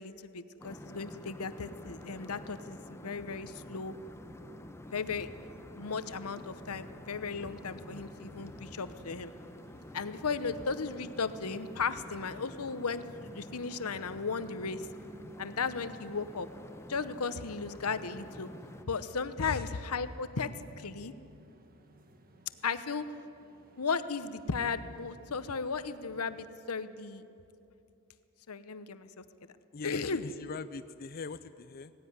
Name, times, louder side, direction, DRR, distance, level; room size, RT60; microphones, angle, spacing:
voice 1, 0.0-3.9 4.9-5.3 5.7-9.3 9.9-14.8 15.4-16.5 16.9-18.5 18.9-21.1 22.6-23.1 23.8-27.2 28.5-29.2 29.8-30.2, left 5 dB, 85° left, 13 dB, 0.9 m, -35 dB
sound 1, 0.6-18.8, left 1 dB, 10° left, 0.9 m, -49 dB
sound 2, 7.1-26.4, right 1 dB, 40° right, 1.5 m, -57 dB
voice 2, 29.7-31.9, left 4 dB, 45° left, 12 dB, 0.5 m, -40 dB
19.0 x 15.5 x 9.6 m, 2.6 s
head